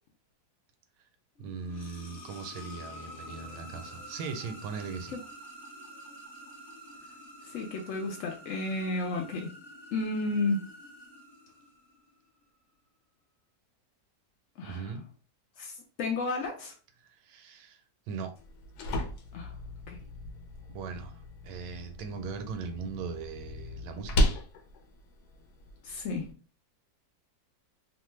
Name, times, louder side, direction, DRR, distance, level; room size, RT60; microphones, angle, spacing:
sound 1, 1.4-12.1, equal, 45° left, 0.7 m, -48 dB
voice 1, 1.4-5.2 14.6-15.0 17.0-17.8 18.1-18.3 20.7-24.4, right 5 dB, 80° right, 1.2 m, -39 dB
voice 2, 7.4-9.5 9.9-10.6 14.6-14.9 15.6-16.7 19.3-19.6 19.9-20.0 25.8-26.3, left 3 dB, 85° left, 0.7 m, -32 dB
sound 2, 18.4-26.3, left 1 dB, 70° left, 1.0 m, -35 dB
2.9 x 2.2 x 3.1 m
omnidirectional pair, 1.9 m